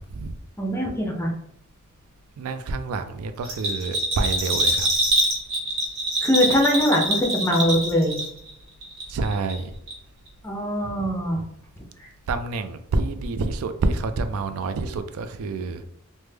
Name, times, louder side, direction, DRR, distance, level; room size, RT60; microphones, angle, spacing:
voice 1, 0.6-1.3 6.2-8.2 10.4-11.4 12.0-12.1, equal, 10° left, 0 dB, 0.5 m, -22 dB
voice 2, 2.4-4.9 9.1-9.7 12.3-15.8, right 3 dB, 90° right, 10 dB, 0.3 m, -27 dB
Bell, 3.4-8.5 8.8-9.6 9.9-10.0, right 1 dB, 60° right, 1.1 m, -24 dB
3.2 x 2.1 x 3.3 m, 0.72 s
head